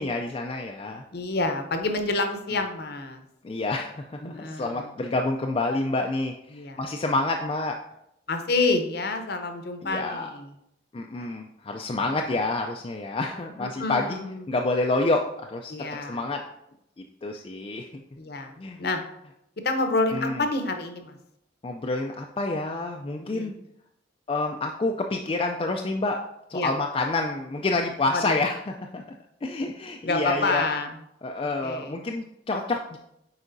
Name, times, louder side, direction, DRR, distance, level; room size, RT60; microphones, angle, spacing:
voice 1, 0.0-1.0 2.5-2.6 3.4-7.8 9.8-10.3 10.9-14.2 14.5-15.7 16.1-16.4 17.2-18.0 18.6-18.8 20.1-20.4 21.6-23.6 24.3-26.2 26.5-29.0 29.4-30.6 31.2-33.0, left 2 dB, 30° left, 2 dB, 0.3 m, -28 dB
voice 2, 1.1-3.2 4.2-4.9 6.5-6.8 8.3-10.5 11.2-11.3 13.6-14.5 15.7-16.2 18.2-18.5 18.8-19.0 19.6-21.2 23.2-23.5 26.5-26.7 28.1-28.4 30.0-30.9 31.6-31.9, left 3 dB, 50° left, 6 dB, 0.7 m, -28 dB
8.1 x 4.8 x 2.6 m, 0.81 s
head